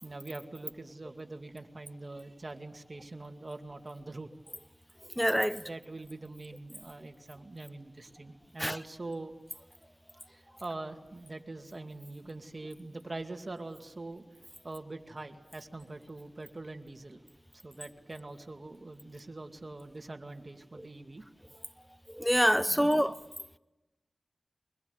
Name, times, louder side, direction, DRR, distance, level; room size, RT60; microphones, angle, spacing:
voice 1, 0.0-4.3 5.5-9.3 10.3-14.2 14.6-17.2 17.6-21.2 22.7-23.1, right 2 dB, 45° right, 2.3 m, -43 dB
voice 2, 5.2-5.6 8.6-8.8 22.2-23.2, equal, ahead, 0.8 m, -25 dB
24.5 x 21.5 x 8.2 m
wide cardioid pair, 55°, 0 cm